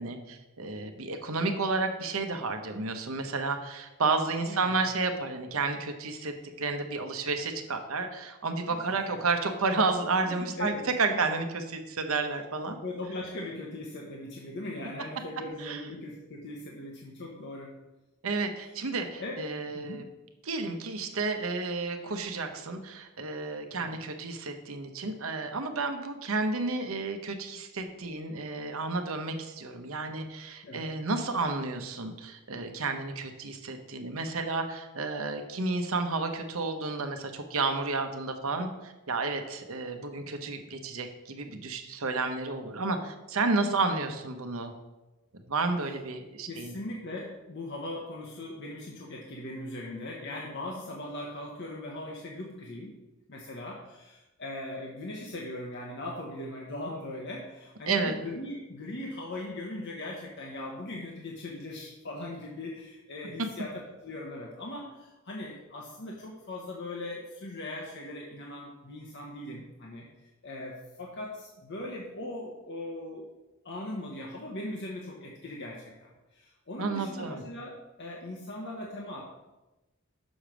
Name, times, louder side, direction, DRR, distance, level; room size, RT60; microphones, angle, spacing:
voice 1, 0.0-12.8 15.6-15.8 18.2-20.0 20.4-44.7 45.5-46.7 57.9-58.1 76.8-77.4, right 3 dB, 70° right, 6 dB, 0.9 m, -31 dB
voice 2, 4.4-4.8 8.7-9.2 10.2-11.2 12.8-17.8 18.6-18.7 19.2-19.4 19.7-20.1 23.7-24.0 30.6-30.9 46.5-52.9 53.3-73.3 73.6-79.2, left 1 dB, 55° left, -2 dB, 1.0 m, -39 dB
6.3 x 5.1 x 6.1 m, 1.0 s
head